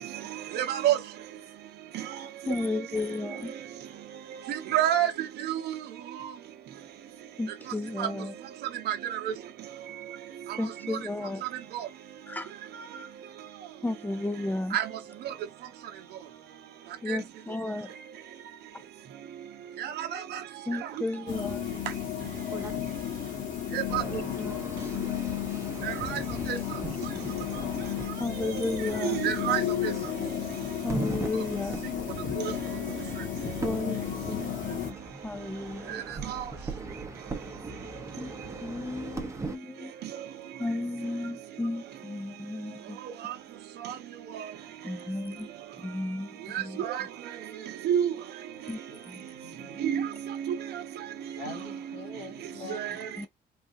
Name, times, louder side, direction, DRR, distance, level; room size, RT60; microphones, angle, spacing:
voice 1, 0.5-1.0 4.5-5.1 8.0-8.1 8.9-9.2 14.7-14.8 17.1-17.2 19.8-20.2 23.7-24.0 25.9-26.2 26.5-26.6 29.0-29.6 46.8-47.0 47.8-48.1 49.8-50.1 50.5-50.6 52.7-52.9, right 11 dB, 70° right, 0.8 m, -27 dB
voice 2, 2.5-3.5 7.4-8.3 10.6-11.4 12.3-12.5 13.8-14.8 17.0-17.9 18.7-18.8 20.7-21.7 24.1-25.0 28.2-29.2 30.8-31.8 33.6-35.0 35.2-36.0 38.2-39.9 40.6-43.0 44.8-45.5 45.8-46.8 48.7-48.8 49.1-49.2 53.2-53.3, left 2 dB, 10° left, 0.4 m, -34 dB
sound 1, 21.3-34.9, left 9 dB, 50° left, 1.1 m, -33 dB
sound 2, 22.5-22.8 23.9-39.6, right 3 dB, 15° right, 0.8 m, -41 dB
voice 3, 48.9-50.0 51.4-53.0, left 3 dB, 80° left, 2.2 m, -45 dB
3.5 x 2.3 x 2.6 m
cardioid pair, 100°, 17 cm